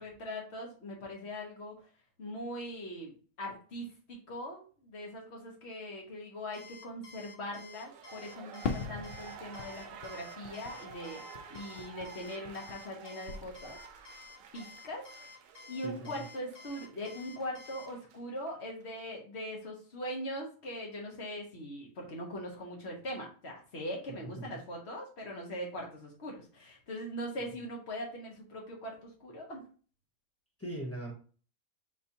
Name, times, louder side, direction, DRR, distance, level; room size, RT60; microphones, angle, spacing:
voice 1, 0.0-1.9 2.2-14.1 14.5-15.0 15.7-29.6, equal, 50° left, -1 dB, 1.5 m, -41 dB
Alarm, 6.5-17.9, left 4 dB, 80° left, 1.3 m, -52 dB
sound 1, 7.7-18.5 18.8-18.9, right 7 dB, 70° right, 0.9 m, -51 dB
Fireworks, 8.6-13.0 13.3-14.1, left 5 dB, 65° left, 0.6 m, -41 dB
voice 2, 15.8-16.2 24.1-24.6 30.6-31.1, right 1 dB, 10° left, -2 dB, 1.1 m, -41 dB
5.3 x 3.3 x 2.8 m, 0.40 s
omnidirectional pair, 1.5 m